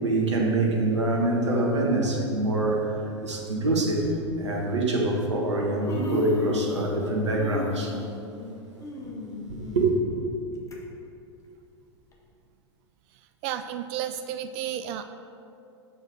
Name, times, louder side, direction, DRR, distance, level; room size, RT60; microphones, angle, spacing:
voice 1, 0.0-4.1 4.4-7.9 9.5-9.9, right 2 dB, 75° right, -1 dB, 1.5 m, -25 dB
Human voice, 2.0-2.2 3.3-3.4 4.0-4.2 5.2-5.3 5.6-7.0 7.2-10.8 11.2-11.3 12.1-12.2, left 2 dB, 20° left, 1.4 m, -36 dB
voice 2, 13.4-15.0, right 10 dB, 40° right, 9 dB, 0.4 m, -32 dB
6.9 x 5.4 x 6.2 m, 2.6 s
figure-of-eight pair, 95°, 15 cm